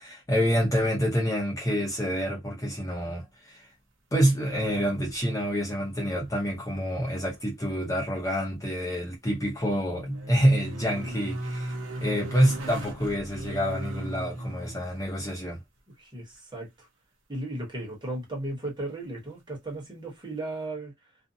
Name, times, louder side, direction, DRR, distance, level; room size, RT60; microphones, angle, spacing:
voice 1, 0.0-3.7 4.1-15.6, equal, 15° left, 0.6 m, -27 dB
sound 1, 4.2-5.2 5.5-6.3 6.6-6.7 9.2-15.0 17.9-18.0, right 1 dB, 85° right, 0.8 m, -37 dB
voice 2, 16.0-16.9 17.3-20.9, right 2 dB, 20° right, 1.1 m, -35 dB
2.6 x 2.1 x 2.6 m
head